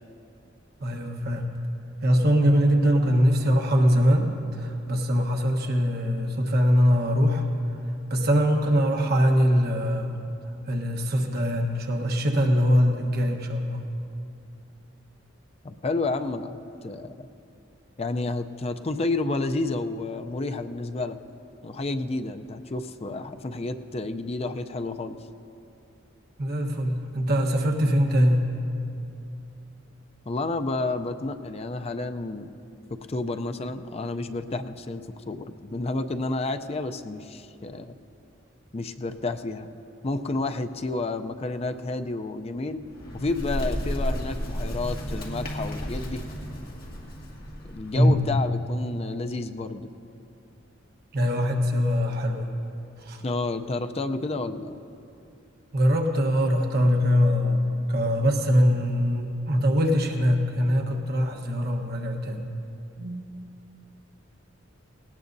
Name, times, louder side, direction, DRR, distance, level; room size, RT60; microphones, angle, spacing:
voice 1, 0.8-1.5 2.0-7.4 8.1-10.2 10.7-13.8 26.4-28.6 47.9-48.3 51.1-52.5 53.0-53.2 55.7-62.5 63.0-63.2, equal, 55° right, 3 dB, 1.2 m, -22 dB
voice 2, 15.6-17.3 18.0-21.2 21.6-25.2 30.3-32.5 33.1-38.0 38.7-39.7 40.0-42.8 43.1-46.2 47.6-49.9 53.2-54.7, left 2 dB, 30° left, 8 dB, 0.5 m, -30 dB
Bird, 42.8-48.5, equal, 50° left, 2.0 m, -33 dB
18.5 x 18.0 x 2.7 m, 2.7 s
head